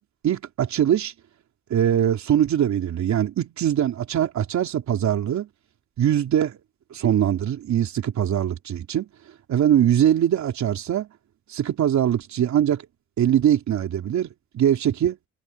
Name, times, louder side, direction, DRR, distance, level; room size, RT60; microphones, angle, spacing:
voice 1, 0.2-1.1 1.7-5.5 6.0-6.6 6.9-9.1 9.5-11.1 11.5-12.8 13.2-14.3 14.5-15.2, right 10 dB, 65° right, 3.4 m, -22 dB
cardioid pair, 90°, 30 cm